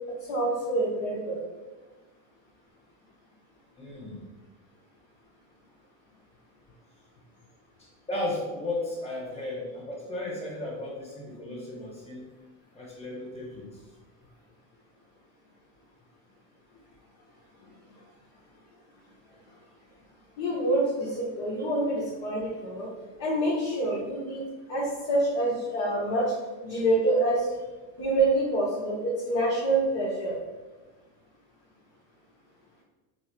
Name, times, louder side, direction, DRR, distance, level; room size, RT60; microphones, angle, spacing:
voice 1, 0.3-1.4 20.4-22.9 23.2-24.4 24.7-26.3 26.6-27.5 28.0-30.4, right 1 dB, 50° left, -6 dB, 1.1 m, -26 dB
voice 2, 3.7-4.2 7.8-12.2 12.7-13.8, left 2 dB, 10° left, -4 dB, 1.2 m, -35 dB
4.4 x 2.0 x 4.4 m, 1.2 s
supercardioid pair, 125°, 49 cm